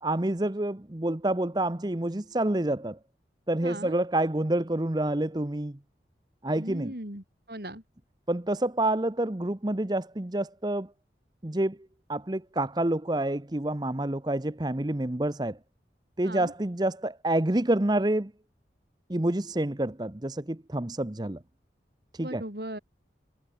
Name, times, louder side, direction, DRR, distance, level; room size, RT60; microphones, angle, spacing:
voice 1, 0.0-3.0 3.5-5.8 6.4-6.9 8.3-10.9 11.4-11.8 12.1-15.6 16.2-18.3 19.1-21.4 22.1-22.4, right 1 dB, 25° right, 0.8 m, -28 dB
voice 2, 3.6-4.0 6.5-7.8 16.2-16.5 22.2-22.8, right 1 dB, 60° right, 6.0 m, -38 dB
head